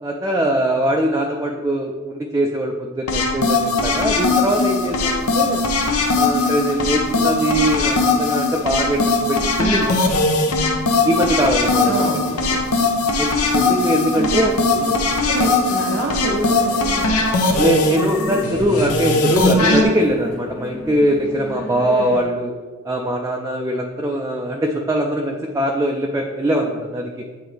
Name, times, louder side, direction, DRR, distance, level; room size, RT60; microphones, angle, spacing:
voice 1, 0.0-5.6 6.1-9.9 11.0-11.9 12.4-12.5 13.2-14.5 14.8-14.9 17.6-22.5 22.8-27.3, right 1 dB, 15° right, 1 dB, 0.3 m, -21 dB
sound 1, 3.1-19.8, left 3 dB, 85° left, 0.8 m, -19 dB
sound 2, 4.0-22.2, left 1 dB, 50° left, 1.4 m, -37 dB
voice 2, 11.8-12.6 14.1-17.2, right 2 dB, 60° right, -1 dB, 0.6 m, -26 dB
8.1 x 3.9 x 3.3 m, 1.5 s
head